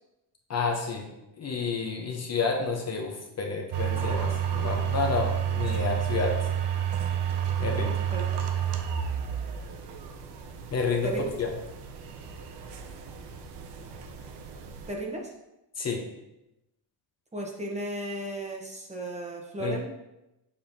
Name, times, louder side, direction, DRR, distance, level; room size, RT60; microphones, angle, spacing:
voice 1, 0.5-1.1 1.4-6.4 7.6-8.0 10.7-11.1 11.4-11.5 15.8-16.0 19.6-19.8, left 4 dB, 35° left, 2 dB, 0.9 m, -29 dB
sound 1, 3.7-14.9, right 9 dB, 70° right, 0.8 m, -31 dB
voice 2, 14.9-15.3 17.3-19.9, right 1 dB, 15° right, -1 dB, 1.0 m, -35 dB
6.9 x 5.4 x 2.7 m, 0.91 s
cardioid pair, 125°, 43 cm